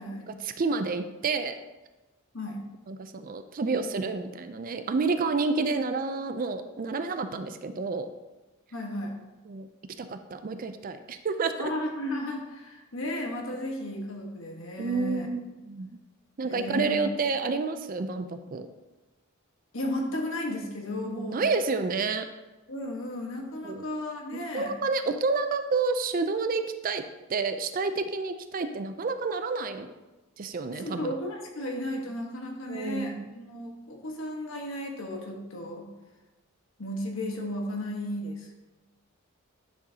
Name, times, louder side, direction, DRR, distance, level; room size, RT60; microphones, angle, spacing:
voice 1, 0.3-1.5 2.9-8.1 9.5-9.7 10.0-11.7 14.8-15.9 16.4-18.7 21.0-22.3 23.6-23.8 24.3-27.0 27.3-29.9 30.4-31.1 32.7-33.3, right 4 dB, 40° right, 9 dB, 0.4 m, -29 dB
voice 2, 8.7-9.1 11.6-15.3 16.4-17.1 19.7-21.4 22.7-24.7 30.8-35.9 36.8-38.5, left 1 dB, 65° left, 1 dB, 1.3 m, -34 dB
10.0 x 6.5 x 2.8 m, 1.1 s
head